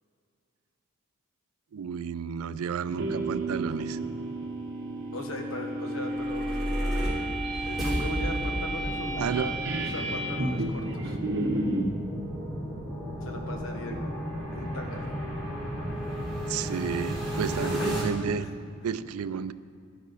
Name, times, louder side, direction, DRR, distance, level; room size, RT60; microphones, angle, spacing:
voice 1, 1.7-4.0 9.2-9.6 13.9-14.0 16.5-18.5 18.8-19.5, right 7 dB, 85° right, 15 dB, 0.4 m, -32 dB
sound 1, 2.8-11.9, right 1 dB, 55° right, 1.1 m, -32 dB
voice 2, 5.1-7.1 7.7-11.2 13.2-14.0 14.5-15.2 17.6-18.0, left 1 dB, 70° left, 2 dB, 1.4 m, -39 dB
sound 2, 6.0-18.0, equal, ahead, 3.3 m, -33 dB
13.0 x 10.5 x 4.0 m, 2.4 s
head